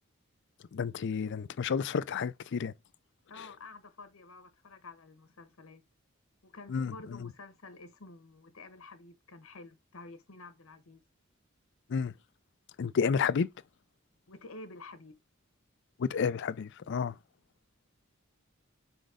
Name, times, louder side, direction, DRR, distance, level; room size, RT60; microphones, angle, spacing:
voice 1, 0.7-2.7 6.7-6.9 7.2-7.3 11.9-12.1 12.8-13.5 16.0-17.1, left 6 dB, 60° left, 0.4 m, -30 dB
voice 2, 3.3-5.8 6.4-11.0 14.3-15.2, left 3 dB, 85° left, 1.1 m, -50 dB
5.1 x 4.0 x 4.9 m
head